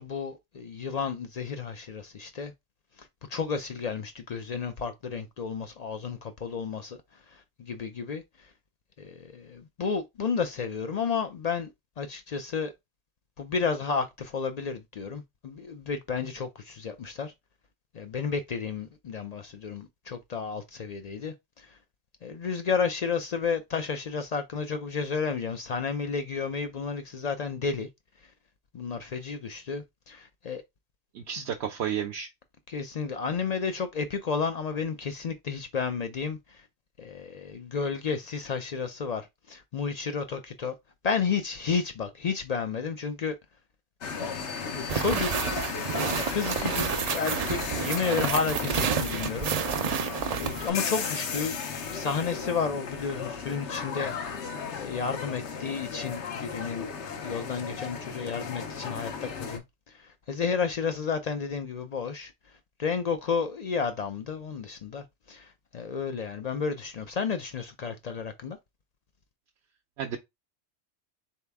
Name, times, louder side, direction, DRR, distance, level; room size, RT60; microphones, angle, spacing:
voice 1, 0.0-2.5 3.0-7.0 7.3-8.5 9.0-11.7 12.0-12.7 13.4-17.3 17.9-21.8 22.2-27.9 28.7-30.6 32.7-36.7 37.0-40.8 41.0-43.4 44.2-44.4 44.7-45.3 45.8-49.5 50.4-51.6 51.9-54.1 54.7-56.9 57.2-62.3 62.8-68.6, left 5 dB, 60° left, 0.4 m, -32 dB
voice 2, 31.1-32.3 70.0-70.2, right 8 dB, 75° right, 0.8 m, -32 dB
sound 1, 44.0-59.6, left 5 dB, 80° left, 1.0 m, -35 dB
sound 2, 44.9-50.7, right 7 dB, 60° right, 0.4 m, -30 dB
4.0 x 2.8 x 3.4 m
omnidirectional pair, 1.2 m